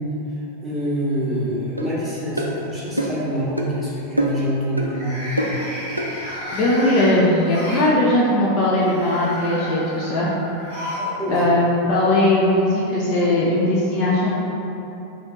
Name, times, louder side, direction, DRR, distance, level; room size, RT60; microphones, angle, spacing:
voice 1, 0.3-5.4 11.2-11.4, equal, 5° right, -10 dB, 1.3 m, -26 dB
sound 1, 1.3-1.9 2.3-2.7 4.8-7.9 8.7-11.1 11.4-11.5 12.6-12.7, left 1 dB, 60° left, 1.3 m, -33 dB
sound 2, 1.8-1.9 2.4-2.5 3.0-3.2 3.6-3.7 4.2-4.5 4.8-4.9 5.4-5.6 6.0-6.1, right 1 dB, 85° right, 0.3 m, -23 dB
voice 2, 6.5-10.3 11.3-14.3, left 1 dB, 40° left, -6 dB, 0.5 m, -19 dB
3.2 x 2.9 x 4.0 m, 3.0 s
figure-of-eight pair, 90°, 0 cm